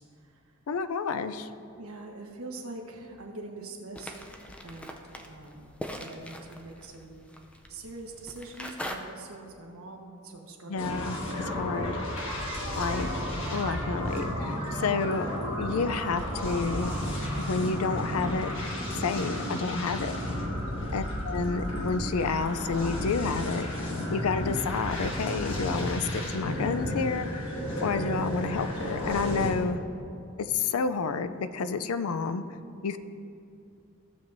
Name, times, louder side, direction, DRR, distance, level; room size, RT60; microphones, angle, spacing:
voice 1, 0.0-0.5 1.8-4.3 4.6-7.3 7.7-11.1 14.8-15.2 20.9-21.2, right 2 dB, 90° right, 1 dB, 1.2 m, -44 dB
voice 2, 0.7-1.5 10.7-11.2 11.5-12.0 12.8-13.1 13.5-15.3 15.6-16.9 17.4-18.5 19.0-20.2 20.9-27.4 27.8-29.8 30.4-32.4 32.8-33.0, left 4 dB, 90° left, 11 dB, 0.5 m, -30 dB
sound 1, 4.0-9.0, equal, 5° left, 0.5 m, -42 dB
sound 2, 10.8-29.5, left 1 dB, 65° left, 1.6 m, -33 dB
sound 3, 12.2-18.4, right 1 dB, 45° right, 1.8 m, -42 dB
15.5 x 7.0 x 2.6 m, 2.6 s
head